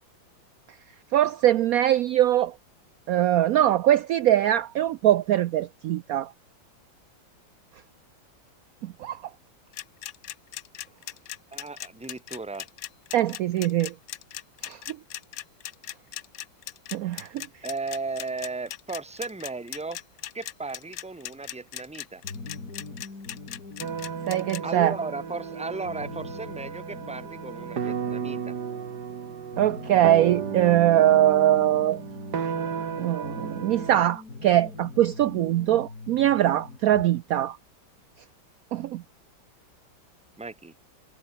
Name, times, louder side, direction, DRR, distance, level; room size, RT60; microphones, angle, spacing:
voice 1, 1.1-2.5 3.1-6.3 8.8-9.2 13.1-13.9 14.6-15.0 16.9-17.5 24.3-24.9 29.6-32.0 33.0-37.6 38.7-39.0, right 12 dB, 85° right, 0.7 m, -22 dB
sound 1, 9.7-24.6, left 13 dB, 65° left, 0.9 m, -38 dB
voice 2, 11.5-12.7 17.6-20.0 20.3-22.2 24.6-28.5 40.4-40.7, right 3 dB, 5° right, 0.9 m, -35 dB
sound 2, 22.2-37.0, left 3 dB, 50° left, 4.3 m, -43 dB
sound 3, 23.8-34.0, right 7 dB, 60° right, 2.3 m, -34 dB
omnidirectional pair, 2.1 m